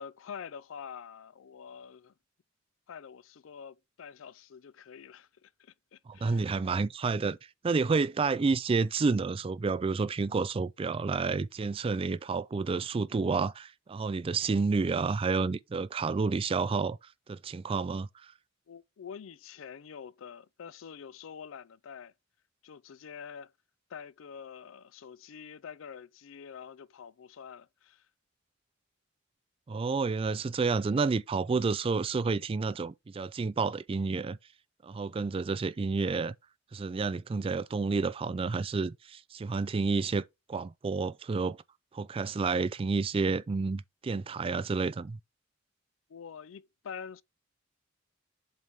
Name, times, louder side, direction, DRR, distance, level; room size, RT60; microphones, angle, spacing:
voice 1, 0.0-2.1 2.9-6.6 18.7-22.1 22.6-23.5 23.9-28.1 46.1-47.2, left 7 dB, 75° left, 0.4 m, -46 dB
voice 2, 6.1-7.4 7.6-17.0 17.3-18.3 29.7-34.4 34.8-36.3 36.7-40.2 40.5-41.6 41.9-45.2, right 4 dB, 30° right, 0.3 m, -30 dB
7.5 x 3.5 x 4.0 m
head